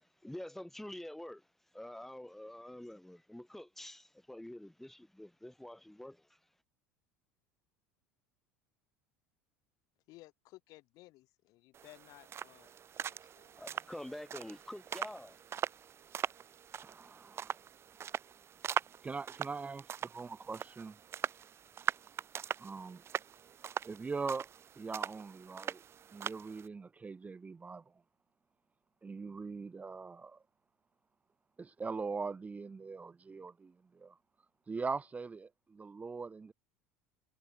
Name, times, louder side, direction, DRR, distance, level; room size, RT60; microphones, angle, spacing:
voice 1, 0.2-1.5 1.7-6.4 13.6-15.4, left 1 dB, 5° left, 3.7 m, -47 dB
voice 2, 10.1-12.7 13.0-13.6, left 19 dB, 60° left, 4.9 m, -58 dB
sound 1, 11.7-26.7, right 8 dB, 35° right, 2.9 m, -41 dB
voice 3, 16.8-17.7 19.0-21.0 22.6-23.0 23.8-24.5 24.8-25.8 26.1-27.8 29.0-30.4 31.6-34.2 34.7-36.5, right 4 dB, 20° right, 1.2 m, -41 dB
hypercardioid pair, 80°, 7 cm